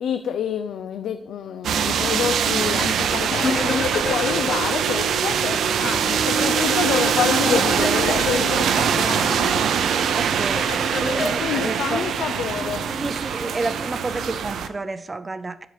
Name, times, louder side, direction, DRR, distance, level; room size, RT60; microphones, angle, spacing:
voice 1, 0.0-9.7 11.4-12.9, left 8 dB, 80° left, 9 dB, 0.4 m, -28 dB
sound 1, 1.6-14.7, right 7 dB, 75° right, 0.5 m, -23 dB
sound 2, 3.3-5.0 5.3-5.4 6.6-9.4 10.6-11.3, left 5 dB, 45° left, 0.7 m, -27 dB
sound 3, 6.0-14.5, equal, 5° right, 0.9 m, -37 dB
voice 2, 10.2-10.7 10.9-12.1 13.0-15.7, right 3 dB, 20° right, 13 dB, 0.4 m, -30 dB
7.8 x 5.1 x 4.9 m, 0.86 s
cardioid pair, 135°, 0 cm